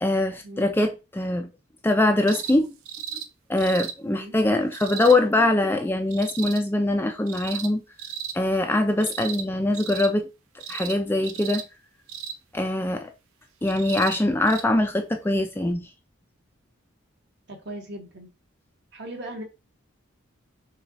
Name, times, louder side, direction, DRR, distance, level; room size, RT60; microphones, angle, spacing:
voice 1, 0.0-1.5 1.8-2.7 3.5-7.8 8.3-10.3 10.7-11.6 12.5-13.1 13.6-15.9, left 2 dB, 10° left, 0.4 m, -23 dB
sound 1, 2.3-2.6 2.9-3.3 3.6-3.9 4.7-5.2 6.1-6.6 7.3-7.7 8.0-8.4 9.0-9.5 9.7-10.1 10.6-11.0 11.2-11.6 12.1-12.4 13.7-14.2 14.5-14.6 15.7-15.8, right 8 dB, 90° right, 0.6 m, -35 dB
voice 2, 17.5-18.3 18.9-19.4, right 1 dB, 55° right, 1.4 m, -38 dB
5.5 x 2.4 x 4.1 m
head